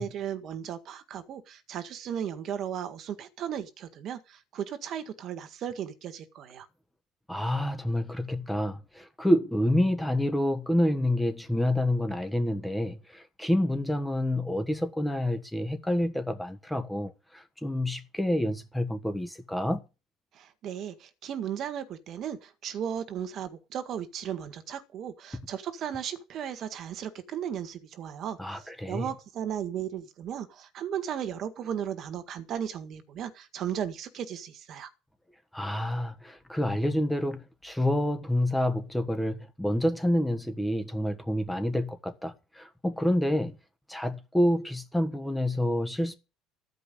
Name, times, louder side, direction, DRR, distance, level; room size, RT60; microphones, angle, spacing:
voice 1, 0.0-6.7 20.3-34.9, right 9 dB, 50° right, 1.7 m, -36 dB
voice 2, 7.3-19.8 28.4-29.0 35.5-43.6 43.9-46.1, left 1 dB, 5° left, 1.3 m, -28 dB
14.5 x 5.4 x 8.5 m
cardioid pair, 125°, 0 cm